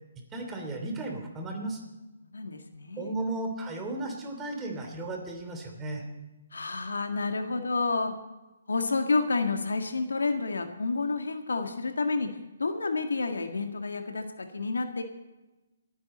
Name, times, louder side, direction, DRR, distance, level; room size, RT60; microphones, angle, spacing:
voice 1, 0.3-1.8 3.0-6.0, right 2 dB, 15° right, 2 dB, 2.8 m, -35 dB
voice 2, 2.3-3.1 6.5-8.1 8.7-12.3 12.6-15.0, left 3 dB, 85° left, 6 dB, 1.8 m, -29 dB
28.0 x 9.5 x 4.3 m, 1.1 s
hypercardioid pair, 145°, 0 cm